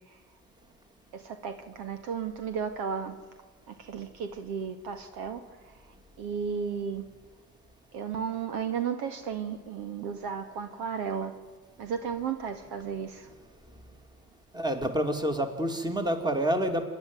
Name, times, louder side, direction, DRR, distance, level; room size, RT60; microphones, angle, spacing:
voice 1, 1.1-3.2 3.7-5.4 6.2-7.0 7.9-11.3 11.8-13.3, right 6 dB, 55° right, 9 dB, 1.8 m, -34 dB
voice 2, 14.5-16.8, right 1 dB, 10° right, 7 dB, 2.6 m, -28 dB
26.5 x 11.0 x 9.4 m, 1.5 s
hypercardioid pair, 75°, 46 cm